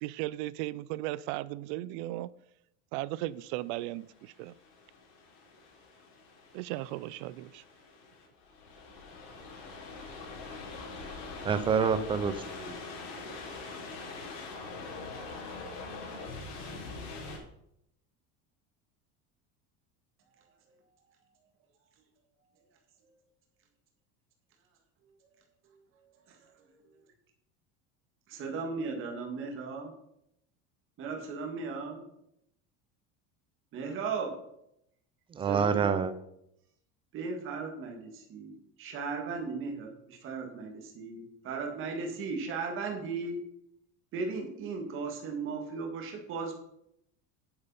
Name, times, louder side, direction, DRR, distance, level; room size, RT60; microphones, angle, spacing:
voice 1, 0.0-2.3 2.9-4.5 6.5-7.6, right 16 dB, 75° right, 20 dB, 0.6 m, -36 dB
sound 1, 3.8-17.4, left 3 dB, 90° left, 4.1 m, -43 dB
voice 2, 11.4-12.8 35.3-36.1, right 6 dB, 15° right, 13 dB, 0.4 m, -27 dB
voice 3, 28.3-29.9 31.0-32.0 33.7-34.3 35.5-35.9 37.1-43.4 44.1-46.5, right 4 dB, 35° right, 2 dB, 1.8 m, -36 dB
8.7 x 8.3 x 5.5 m, 0.77 s
cardioid pair, 170°, 35 cm